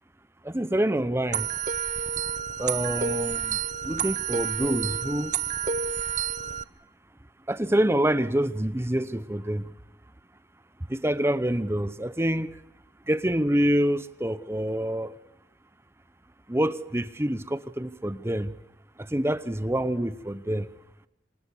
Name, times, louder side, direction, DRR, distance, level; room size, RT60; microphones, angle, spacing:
voice 1, 0.4-1.5 2.6-3.6 3.8-5.3 7.5-9.7 10.9-12.6 13.1-15.1 16.5-18.5 19.0-20.7, right 1 dB, 15° right, 0.8 m, -26 dB
sound 1, 1.3-6.6, right 7 dB, 45° right, 0.8 m, -29 dB
25.5 x 20.0 x 8.1 m
head